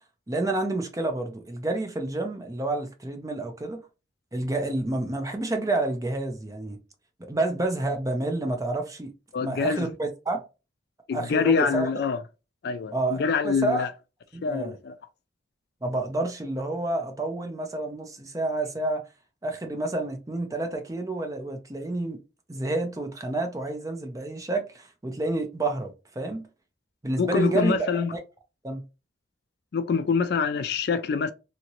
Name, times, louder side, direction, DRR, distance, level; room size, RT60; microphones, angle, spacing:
voice 1, 0.3-3.8 4.3-6.8 7.2-9.1 9.4-10.4 11.1-11.9 12.9-13.9 14.3-14.8 15.8-19.0 19.4-22.2 22.5-26.5 27.0-27.7 28.1-28.2 28.6-28.8, right 2 dB, 20° right, 0.5 m, -29 dB
voice 2, 9.3-9.9 11.1-12.2 12.6-13.9 14.4-15.0 27.2-28.1 29.7-31.3, left 5 dB, 55° left, 0.3 m, -25 dB
2.8 x 2.8 x 2.9 m
head